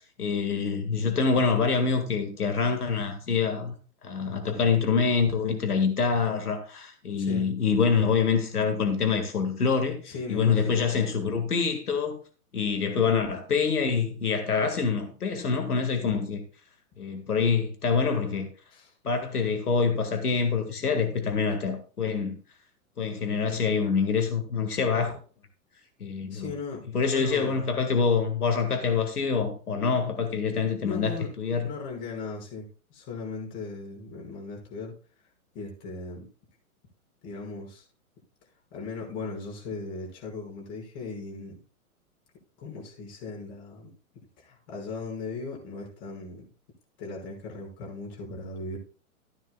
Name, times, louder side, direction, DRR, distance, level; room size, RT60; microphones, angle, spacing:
voice 1, 0.2-3.7 4.0-12.2 12.5-16.4 17.0-18.5 19.0-22.3 23.0-25.1 26.0-26.5 26.9-31.7, left 5 dB, 90° left, 2.0 m, -26 dB
voice 2, 7.2-7.5 10.0-10.9 18.7-18.9 26.3-27.6 30.8-34.9 35.5-36.3 37.2-37.9 38.7-41.6 42.6-43.9 44.4-46.5 47.0-48.8, left 4 dB, 45° left, 5.9 m, -38 dB
13.5 x 10.0 x 2.3 m
hypercardioid pair, 120°, 44 cm